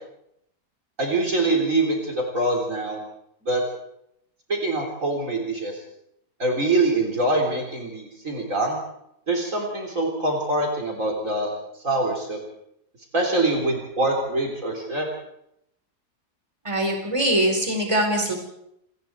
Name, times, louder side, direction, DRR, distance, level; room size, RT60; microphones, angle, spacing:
voice 1, 1.0-3.0 3.5-3.6 4.5-5.8 6.4-8.8 9.3-11.5 11.8-12.4 13.1-15.1, right 2 dB, 50° right, 1 dB, 4.1 m, -24 dB
voice 2, 16.6-18.4, right 1 dB, 15° right, 2 dB, 4.6 m, -22 dB
28.0 x 20.0 x 4.7 m, 0.77 s
omnidirectional pair, 1.8 m